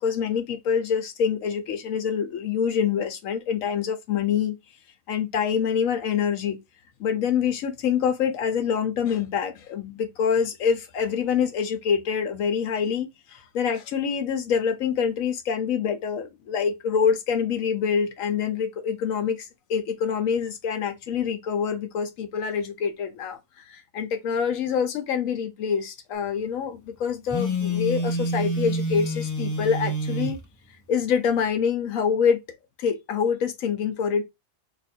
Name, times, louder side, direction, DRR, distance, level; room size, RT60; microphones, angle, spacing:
voice 1, 0.0-4.6 5.1-6.6 7.0-30.4 30.9-32.4 32.8-34.2, left 7 dB, 85° left, 1.1 m, -26 dB
Telephone, 27.3-30.4, equal, 20° left, 0.5 m, -27 dB
2.9 x 2.4 x 4.2 m
omnidirectional pair, 1.4 m